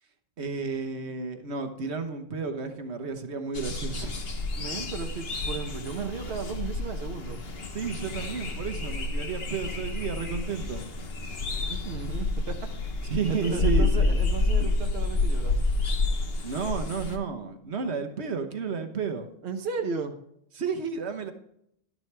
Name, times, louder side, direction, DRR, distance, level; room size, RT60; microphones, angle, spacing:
voice 1, 0.4-4.2 7.7-10.8 13.0-14.2 14.6-14.7 16.4-19.3 20.6-21.3, right 5 dB, 85° right, 6 dB, 1.4 m, -32 dB
sound 1, 3.5-17.2, left 3 dB, 65° left, 1.4 m, -29 dB
voice 2, 4.5-7.4 11.7-12.9 13.3-15.6 19.4-20.2, right 5 dB, 70° right, 4 dB, 1.1 m, -35 dB
12.0 x 10.0 x 3.4 m, 0.74 s
omnidirectional pair, 1.1 m